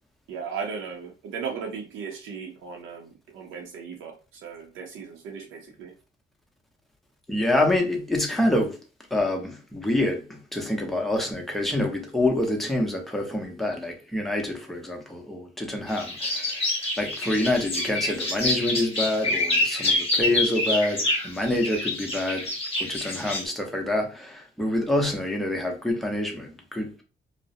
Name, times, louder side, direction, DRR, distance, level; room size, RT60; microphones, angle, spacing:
voice 1, 0.3-4.1 4.4-5.9, right 6 dB, 85° right, 0.6 m, -36 dB
voice 2, 7.3-8.8 9.1-10.2 10.5-16.6 17.0-22.4 22.8-27.0, left 1 dB, ahead, 0.7 m, -26 dB
sound 1, 15.9-23.4, left 2 dB, 30° left, 0.9 m, -27 dB
2.3 x 2.0 x 2.7 m
cardioid pair, 90°, 20 cm